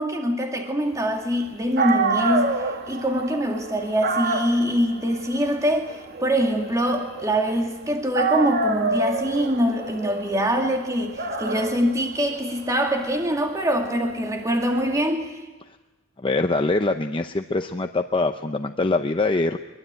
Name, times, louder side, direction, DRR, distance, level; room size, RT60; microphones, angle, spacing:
voice 1, 0.0-15.4, equal, 15° right, 2 dB, 2.3 m, -24 dB
Dog, 1.5-1.6 1.8-7.8 8.1-14.9, right 3 dB, 55° right, 2.3 m, -28 dB
voice 2, 16.2-19.6, left 2 dB, 25° left, 6 dB, 0.7 m, -23 dB
23.0 x 23.0 x 9.0 m, 1.1 s
head